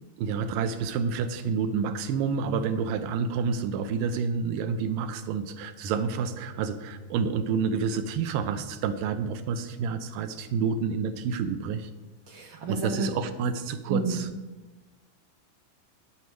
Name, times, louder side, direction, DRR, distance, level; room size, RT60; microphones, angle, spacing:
voice 1, 0.2-11.9 12.7-14.3, right 6 dB, 85° right, 10 dB, 2.4 m, -29 dB
Piano, 5.8-13.9, left 5 dB, 75° left, 2.0 m, -51 dB
voice 2, 12.3-13.1 13.9-14.4, right 3 dB, 60° right, 2 dB, 1.3 m, -30 dB
11.5 x 9.5 x 4.6 m, 1.2 s
omnidirectional pair, 3.9 m